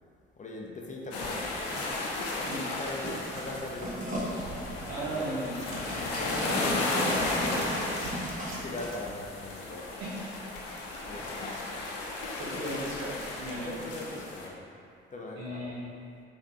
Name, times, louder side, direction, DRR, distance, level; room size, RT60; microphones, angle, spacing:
voice 1, 0.4-2.1 2.4-4.3 4.6-5.5 6.0-8.2 8.6-9.8 11.0-11.6 12.5-12.6 13.6-14.7 15.1-15.6, left 2 dB, 25° left, -2 dB, 0.6 m, -40 dB
sound 1, 1.1-14.5, left 2 dB, 65° left, 0.7 m, -34 dB
sound 2, 1.7-2.2 2.6-9.0, right 1 dB, 25° right, 1.2 m, -38 dB
sound 3, 3.3-9.7, right 4 dB, 80° right, 0.5 m, -47 dB
voice 2, 4.9-5.8 10.0-10.4 11.1-11.4 12.4-13.7 15.4-15.8, right 1 dB, 60° right, -7 dB, 1.3 m, -36 dB
5.2 x 2.6 x 3.8 m, 2.4 s
figure-of-eight pair, 45°, 30 cm